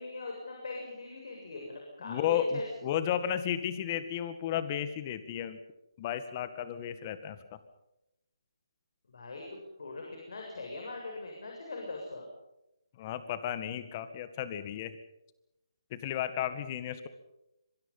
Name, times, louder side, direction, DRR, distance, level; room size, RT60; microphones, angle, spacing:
voice 1, 0.0-2.6 9.1-12.2, left 3 dB, 65° left, 0 dB, 7.3 m, -41 dB
voice 2, 2.0-5.6 6.0-7.6 13.0-14.9 15.9-17.1, left 10 dB, 30° left, 12 dB, 1.9 m, -33 dB
26.0 x 24.5 x 5.7 m, 0.89 s
hypercardioid pair, 155°, 3 cm